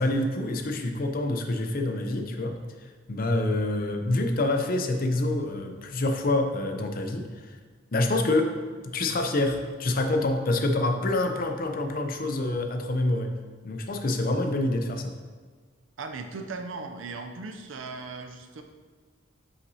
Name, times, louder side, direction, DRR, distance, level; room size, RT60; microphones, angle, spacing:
voice 1, 0.0-2.6 3.1-7.6 7.9-13.3 13.6-15.1, left 2 dB, 45° left, 5 dB, 0.6 m, -27 dB
voice 2, 16.0-18.6, right 3 dB, 80° right, 5 dB, 0.5 m, -38 dB
7.8 x 5.7 x 2.7 m, 1.5 s
head